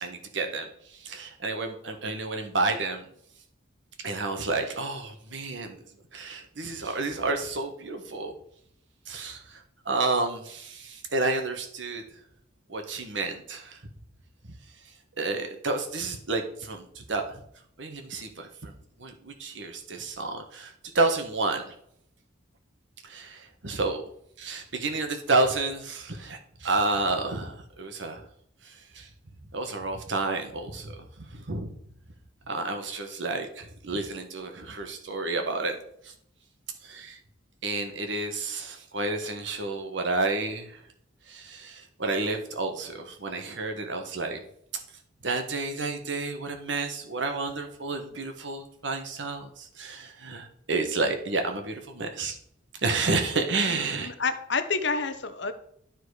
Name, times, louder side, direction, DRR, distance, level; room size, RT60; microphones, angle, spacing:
voice 1, 0.0-3.1 4.0-5.8 6.1-8.3 9.1-12.0 12.7-13.8 15.2-17.4 17.8-18.7 19.0-21.7 23.0-24.0 24.4-28.3 28.6-29.1 29.5-31.7 32.5-35.8 36.0-36.1 36.8-37.2 37.6-40.8 41.3-44.4 45.2-52.4 52.8-54.1, right 3 dB, 65° right, 5 dB, 1.4 m, -30 dB
voice 2, 53.7-55.5, left 4 dB, 65° left, 9 dB, 0.9 m, -29 dB
12.0 x 4.4 x 4.9 m, 0.70 s
head